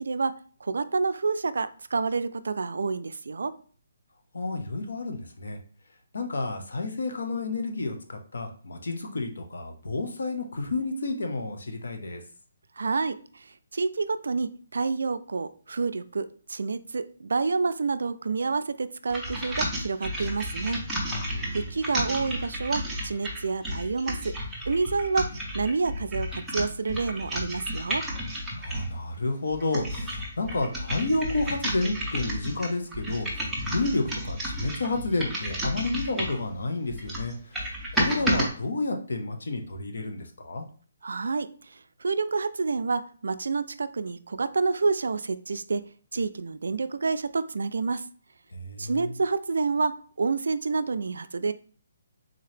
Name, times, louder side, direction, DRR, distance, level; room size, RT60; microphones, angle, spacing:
voice 1, 0.0-3.5 12.8-20.8 21.5-24.3 24.7-28.1 41.0-45.8 46.1-48.0 48.8-51.5, right 4 dB, 75° right, 12 dB, 0.3 m, -28 dB
voice 2, 4.3-5.6 6.1-12.2 21.1-21.7 28.6-40.6 48.5-49.1, left 2 dB, 75° left, 4 dB, 0.8 m, -31 dB
sound 1, 19.1-29.0 29.5-36.5 36.9-38.5, equal, ahead, 0.5 m, -32 dB
3.8 x 2.8 x 3.2 m, 0.43 s
hypercardioid pair, 175°, 0 cm